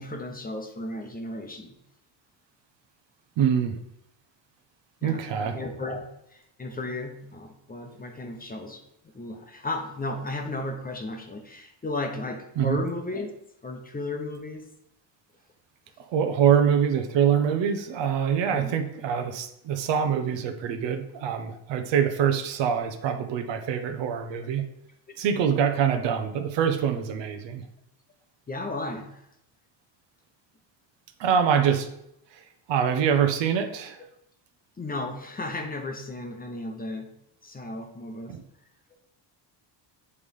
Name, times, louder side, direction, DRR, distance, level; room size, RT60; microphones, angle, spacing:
voice 1, 0.0-1.8 5.0-5.3 5.5-13.3 13.6-14.6 18.5-18.7 25.1-25.2 28.5-29.2 34.8-37.1 37.4-38.4, left 2 dB, 20° left, 5 dB, 0.9 m, -34 dB
voice 2, 3.4-3.8 5.0-5.6 12.6-12.8 16.0-24.7 25.2-27.6 31.2-31.9 32.3-32.4 32.7-34.0 38.3-38.4, right 8 dB, 70° right, 7 dB, 1.0 m, -24 dB
8.3 x 3.3 x 5.4 m, 0.78 s
cardioid pair, 115°, 45 cm